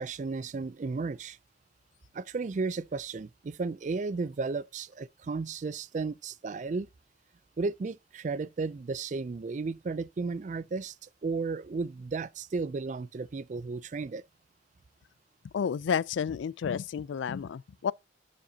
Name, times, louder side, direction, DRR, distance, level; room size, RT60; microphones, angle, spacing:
voice 1, 0.0-1.4 2.1-6.9 7.6-14.2, right 4 dB, 40° right, 0.3 m, -34 dB
voice 2, 15.5-17.9, left 7 dB, 80° left, 0.3 m, -31 dB
12.0 x 5.1 x 2.8 m
head